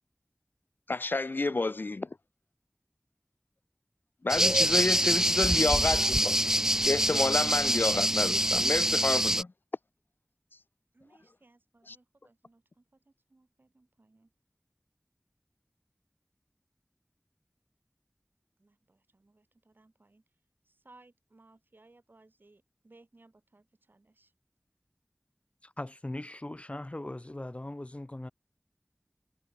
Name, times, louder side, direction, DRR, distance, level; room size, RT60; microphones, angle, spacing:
voice 1, 0.9-2.1 4.2-6.4 6.9-9.5 11.9-12.0, left 3 dB, 80° left, 0.7 m, -30 dB
sound 1, 4.3-9.4, right 1 dB, 15° right, 0.8 m, -25 dB
voice 2, 10.9-14.3 18.6-20.2 20.7-24.3, right 2 dB, 80° right, 6.1 m, -62 dB
voice 3, 25.6-28.3, left 1 dB, 35° left, 1.6 m, -39 dB
wide cardioid pair, 45°, 3 cm